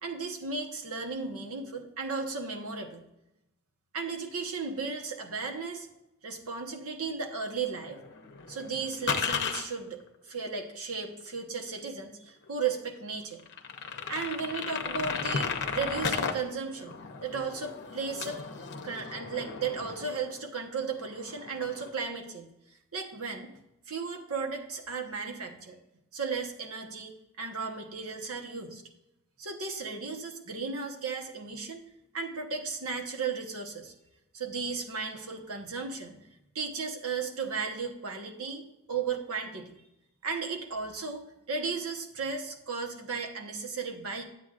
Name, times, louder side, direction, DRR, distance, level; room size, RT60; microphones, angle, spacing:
voice 1, 0.0-3.0 3.9-5.9 6.2-8.0 8.5-10.0 10.2-13.4 14.1-18.5 18.8-22.5 22.9-23.5 23.9-25.8 26.1-28.8 29.4-31.8 32.1-33.9 34.3-36.2 36.5-39.7 40.2-44.2, right 5 dB, 70° right, 3 dB, 1.2 m, -35 dB
sound 1, 7.6-9.6 11.3-11.4 11.8-11.9 12.5-12.6 12.9-13.0 13.4-16.3 16.7-20.5 20.8-21.9, left 6 dB, 50° left, 0.8 m, -35 dB
11.0 x 8.0 x 2.5 m, 0.87 s
head